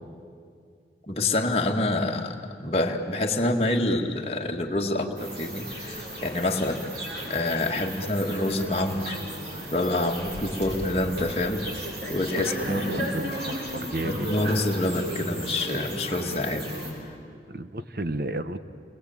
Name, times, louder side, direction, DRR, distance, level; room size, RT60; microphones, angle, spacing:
voice 1, 1.1-7.0 7.3-9.2 9.7-11.7 12.1-13.1 14.0-16.7 17.1-17.2, left 2 dB, 35° left, 1 dB, 2.0 m, -27 dB
sound 1, 5.2-16.9, equal, 70° right, 7.6 m, -35 dB
voice 2, 12.4-14.3 17.5-18.6, right 2 dB, 55° right, 11 dB, 1.1 m, -33 dB
29.5 x 21.5 x 8.9 m, 2.2 s
head